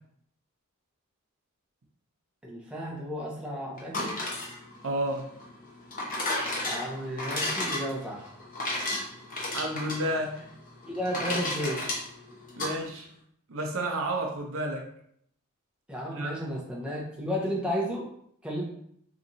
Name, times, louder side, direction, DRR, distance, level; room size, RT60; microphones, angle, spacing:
voice 1, 2.4-4.2 6.6-8.3 10.9-11.8 15.9-18.1 18.4-18.6, equal, 5° right, -4 dB, 0.7 m, -33 dB
sound 1, 3.8-12.7, left 1 dB, 40° left, 0.9 m, -33 dB
voice 2, 4.8-5.2 9.5-10.3 12.6-13.1 13.5-14.9 16.1-16.3, right 1 dB, 65° right, 1 dB, 0.6 m, -31 dB
3.9 x 2.9 x 2.6 m, 0.67 s
head